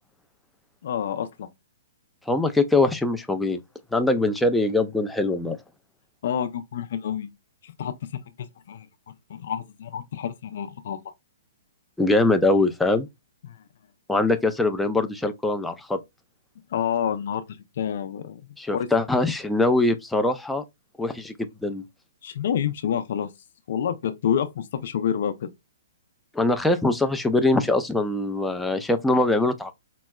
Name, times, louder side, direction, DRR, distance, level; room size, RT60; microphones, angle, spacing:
voice 1, 0.8-1.5 6.2-7.3 7.6-8.9 9.3-11.0 13.4-13.6 16.7-17.4 17.8-18.4 18.7-18.9 22.2-23.3 23.7-25.5, left 8 dB, 60° left, 0.5 m, -28 dB
voice 2, 2.3-3.6 3.9-5.6 12.0-13.1 14.1-16.0 18.6-20.6 21.0-21.8 26.3-29.7, left 2 dB, 5° left, 0.4 m, -22 dB
4.5 x 2.0 x 2.2 m
hypercardioid pair, 145°, 0 cm